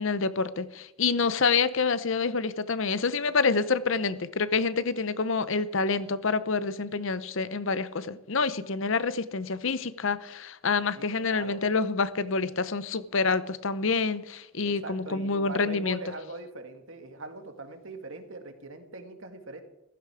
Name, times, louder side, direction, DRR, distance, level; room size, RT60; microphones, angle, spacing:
voice 1, 0.0-16.0, left 4 dB, 65° left, 0.7 m, -27 dB
voice 2, 10.9-11.6 14.6-19.6, right 2 dB, 65° right, 2.0 m, -41 dB
15.5 x 15.0 x 5.0 m
head